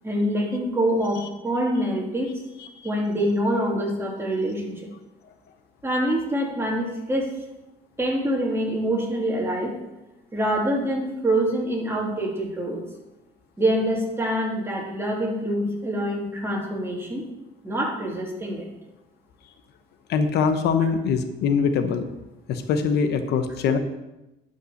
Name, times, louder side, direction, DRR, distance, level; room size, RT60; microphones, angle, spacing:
voice 1, 0.0-2.3 2.8-4.8 5.8-7.3 8.0-9.8 10.3-12.8 13.6-17.3 17.6-18.7, right 1 dB, 15° right, -1 dB, 2.8 m, -25 dB
voice 2, 20.1-22.0 22.5-23.8, left 6 dB, 75° left, 8 dB, 1.0 m, -22 dB
11.0 x 5.7 x 6.5 m, 0.96 s
cardioid pair, 110°, 17 cm